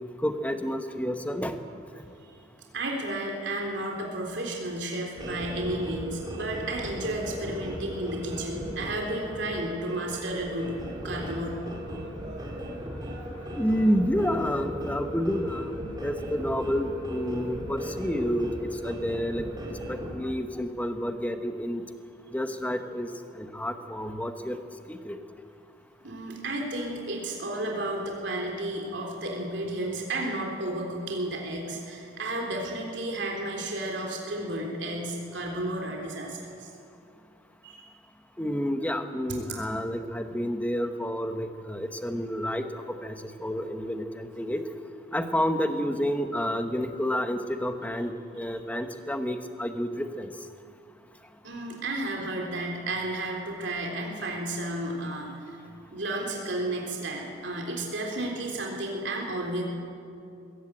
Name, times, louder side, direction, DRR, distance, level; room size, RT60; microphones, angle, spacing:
voice 1, 0.2-1.6 11.0-11.3 13.6-21.8 22.3-23.1 23.3-24.6 24.9-25.2 38.4-44.6 45.1-50.3, equal, 10° left, 7 dB, 1.1 m, -29 dB
voice 2, 2.7-10.7 11.0-11.6 26.0-36.7 37.6-37.9 39.3-39.4 51.4-55.6 55.9-59.6, right 1 dB, 65° right, 0 dB, 3.6 m, -32 dB
sound 1, 5.1-20.1, equal, 20° right, 3.6 m, -37 dB
sound 2, 5.4-13.9, right 1 dB, 40° right, 4.7 m, -50 dB
21.5 x 16.5 x 8.9 m, 2.5 s
head